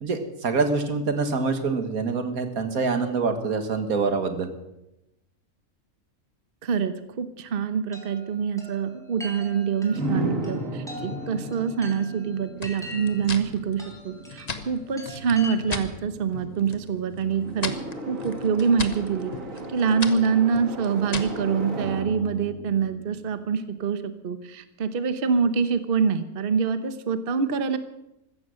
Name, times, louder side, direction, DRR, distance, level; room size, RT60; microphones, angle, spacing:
voice 1, 0.0-4.5, right 4 dB, 85° right, 7 dB, 2.1 m, -25 dB
voice 2, 6.6-17.7 18.1-19.3 19.7-27.8, right 6 dB, 45° right, 11 dB, 1.1 m, -25 dB
Chime, 7.9-16.0, left 1 dB, ahead, 3.4 m, -43 dB
sound 1, 9.9-23.7, right 1 dB, 65° right, 2.4 m, -36 dB
sound 2, 12.6-15.9 16.3-16.9 17.2-21.4, left 4 dB, 30° left, 1.1 m, -36 dB
15.0 x 14.0 x 6.5 m, 0.91 s
omnidirectional pair, 1.5 m